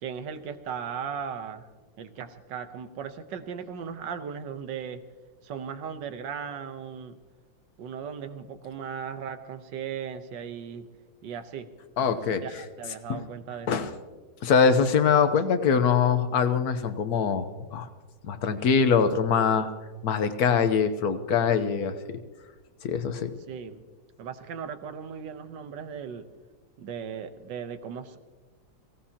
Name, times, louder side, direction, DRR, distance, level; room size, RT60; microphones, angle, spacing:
voice 1, 0.0-1.7 2.0-5.0 5.4-7.2 7.8-10.9 11.2-11.7 12.0-13.7 23.5-23.8 24.2-26.3 26.8-28.2, right 7 dB, 70° right, 10 dB, 1.6 m, -37 dB
voice 2, 12.0-12.4 13.1-13.2 13.7-13.9 14.4-17.9 18.2-19.7 20.0-22.0 22.8-23.3, left 6 dB, 60° left, 9 dB, 1.3 m, -23 dB
23.5 x 16.5 x 2.9 m, 1.3 s
omnidirectional pair, 2.1 m